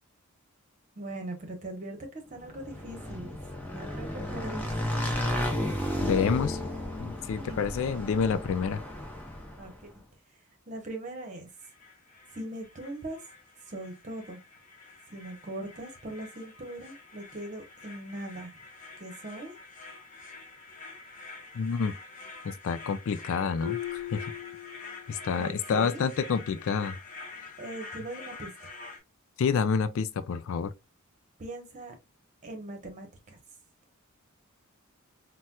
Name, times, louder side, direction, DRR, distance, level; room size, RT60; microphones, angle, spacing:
voice 1, 0.9-3.4 3.7-4.7 7.4-7.6 9.6-9.9 10.7-11.5 12.3-13.2 13.7-14.4 15.1-18.5 19.0-19.5 25.4-26.0 27.6-28.7 31.4-32.0 32.4-33.4, right 1 dB, 35° right, 1.0 m, -40 dB
Motorcycle / Engine, 2.4-9.8, left 1 dB, 5° left, 0.7 m, -33 dB
voice 2, 6.0-6.6 7.0-8.8 21.5-21.9 22.4-24.3 25.1-27.0 29.4-30.7, left 6 dB, 60° left, 0.3 m, -28 dB
sound 1, 11.5-29.0, left 3 dB, 35° left, 1.0 m, -47 dB
Marimba xylophone, 23.6-25.4, left 14 dB, 50° right, 0.8 m, -38 dB
4.1 x 2.2 x 2.2 m
head